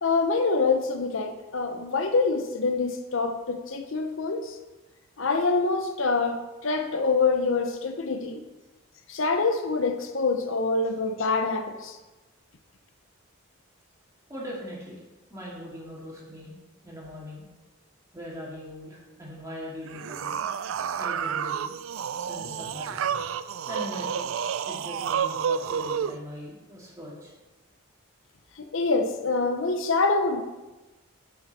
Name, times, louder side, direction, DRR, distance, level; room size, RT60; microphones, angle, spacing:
voice 1, 0.0-4.5 5.2-8.4 9.1-12.0 28.6-30.4, left 3 dB, 65° left, 5 dB, 0.7 m, -25 dB
voice 2, 14.3-15.0 15.3-16.5 16.8-17.4 18.1-20.4 21.0-21.7 22.2-23.3 23.7-24.3 24.6-27.3, equal, 15° right, -5 dB, 2.2 m, -40 dB
sound 1, 19.8-26.2, right 7 dB, 70° right, 0.3 m, -30 dB
10.5 x 5.9 x 4.1 m, 1.1 s
head